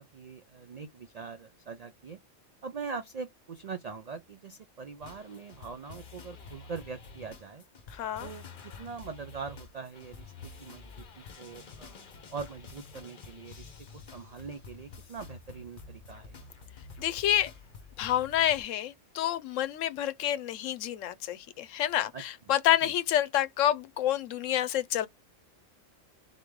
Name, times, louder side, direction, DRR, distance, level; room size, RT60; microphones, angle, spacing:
voice 1, 0.0-2.2 2.6-7.6 8.2-12.0 12.3-16.4 22.1-22.2 22.8-22.9, right 5 dB, 75° right, 0.3 m, -42 dB
sound 1, 5.0-18.6, left 4 dB, 45° left, 0.8 m, -49 dB
voice 2, 7.9-8.3 17.0-17.5 18.0-25.1, left 12 dB, 80° left, 1.0 m, -28 dB
3.9 x 3.2 x 3.5 m
omnidirectional pair, 1.3 m